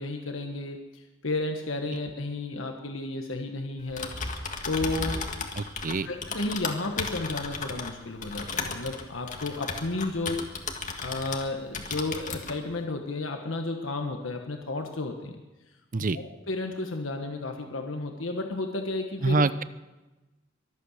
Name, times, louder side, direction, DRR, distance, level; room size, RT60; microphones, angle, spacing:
voice 1, 0.0-4.1 4.6-5.2 6.1-10.4 11.0-15.4 16.0-19.4, left 2 dB, 75° left, 4 dB, 1.3 m, -32 dB
Typing, 3.8-11.5 11.7-12.6, left 4 dB, 40° left, 1.7 m, -35 dB
voice 2, 5.6-6.1 15.9-16.2 19.2-19.6, right 3 dB, 45° right, 15 dB, 0.6 m, -25 dB
23.0 x 8.6 x 6.5 m, 1.1 s
head